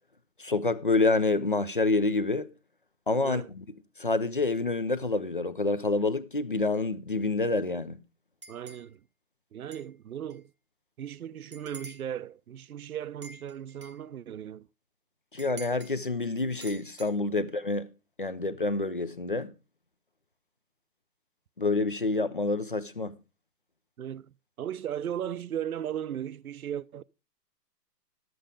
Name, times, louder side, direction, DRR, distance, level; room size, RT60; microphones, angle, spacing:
voice 1, 0.4-2.5 3.1-3.6 4.0-8.0 15.3-17.9 18.2-19.5 21.6-23.2, left 3 dB, 35° left, 0.5 m, -27 dB
sound 1, 8.4-8.9 9.7-9.9 10.3-10.4 11.5-12.1 13.2-14.0 15.4-15.9 16.6-17.1, right 2 dB, 20° right, 0.8 m, -47 dB
voice 2, 8.5-9.0 9.5-10.4 11.0-14.7 24.0-24.3 24.6-27.0, right 10 dB, 60° right, 0.6 m, -36 dB
11.5 x 7.8 x 5.1 m
hypercardioid pair, 170°, 49 cm